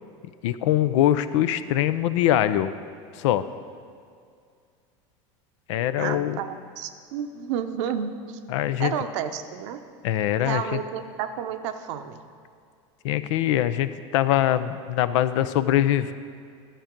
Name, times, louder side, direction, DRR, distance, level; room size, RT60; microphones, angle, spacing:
voice 1, 0.4-2.7 3.2-3.4 5.7-6.4 8.5-8.9 10.0-10.8 13.0-16.1, left 12 dB, 80° left, 13 dB, 0.5 m, -23 dB
voice 2, 6.0-8.4 8.8-9.8 10.4-12.2, right 8 dB, 75° right, 8 dB, 0.8 m, -31 dB
12.5 x 7.5 x 5.2 m, 2.3 s
supercardioid pair, 115°, 16 cm